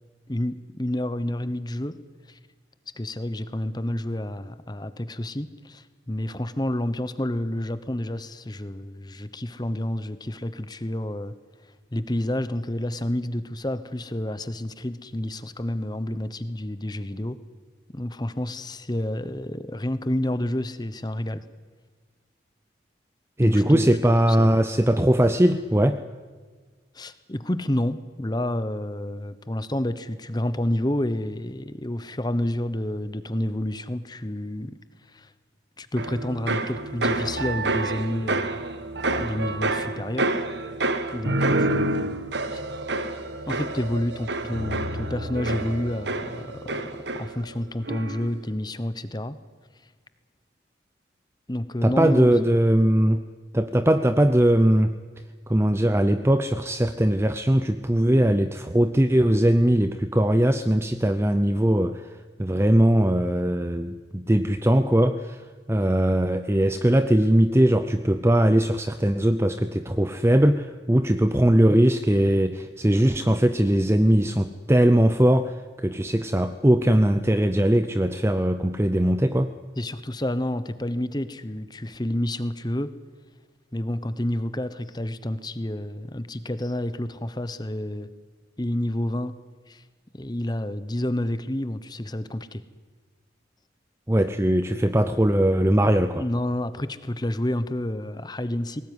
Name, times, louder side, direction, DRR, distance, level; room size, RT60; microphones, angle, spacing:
voice 1, 0.3-2.0 2.3-2.4 2.9-11.3 11.9-17.4 17.9-21.4 23.4-23.9 24.4-24.5 26.9-34.8 35.1-35.3 35.8-38.6 39.1-40.4 41.1-42.2 42.5-42.6 43.5-49.4 51.5-52.3 79.8-82.9 83.7-88.1 88.6-89.4 89.7-89.8 90.1-92.6 96.2-98.8, left 1 dB, 20° left, 13 dB, 1.0 m, -29 dB
voice 2, 23.4-26.0 51.8-53.2 53.5-54.9 55.5-62.1 62.4-65.4 65.7-79.5 94.1-96.2, right 1 dB, 15° right, 10 dB, 0.6 m, -20 dB
sound 1, 36.0-47.6 47.9-48.4, right 2 dB, 60° right, 1.4 m, -28 dB
20.5 x 18.5 x 9.7 m, 1.5 s
head